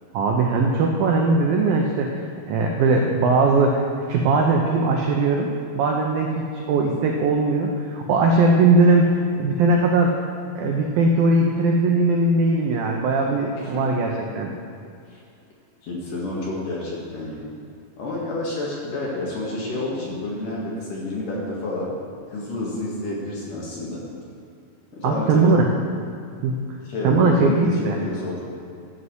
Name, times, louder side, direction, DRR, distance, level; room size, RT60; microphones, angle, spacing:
voice 1, 0.1-2.2 2.5-3.8 4.1-10.1 10.6-14.5 25.0-25.7 26.4-26.6 27.0-28.0, right 3 dB, 85° right, 1 dB, 2.0 m, -19 dB
voice 2, 15.8-17.4 18.0-21.9 22.3-24.0 24.9-25.5 26.9-28.4, left 2 dB, 55° left, -5 dB, 3.0 m, -29 dB
12.5 x 5.6 x 7.9 m, 2.4 s
omnidirectional pair, 5.3 m